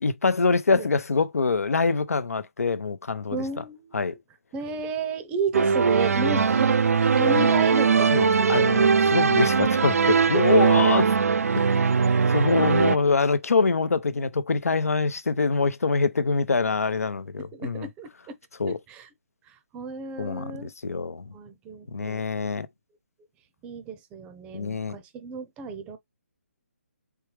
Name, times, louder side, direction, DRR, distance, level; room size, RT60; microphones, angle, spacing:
voice 1, 0.0-3.4 3.9-4.1 6.2-6.4 7.3-7.5 8.1-11.0 11.5-11.8 12.3-17.9 18.6-18.8 20.2-21.3 21.9-22.7 24.5-25.0, left 4 dB, 80° left, 0.7 m, -25 dB
voice 2, 3.3-4.0 4.5-8.7 10.3-10.7 11.6-11.7 17.4-18.4 18.7-19.1 19.5-20.7 21.3-22.2 23.6-26.0, right 5 dB, 15° right, 0.6 m, -33 dB
sound 1, 5.5-13.0, right 5 dB, 80° right, 0.4 m, -20 dB
4.4 x 3.4 x 3.3 m
hypercardioid pair, 150°, 8 cm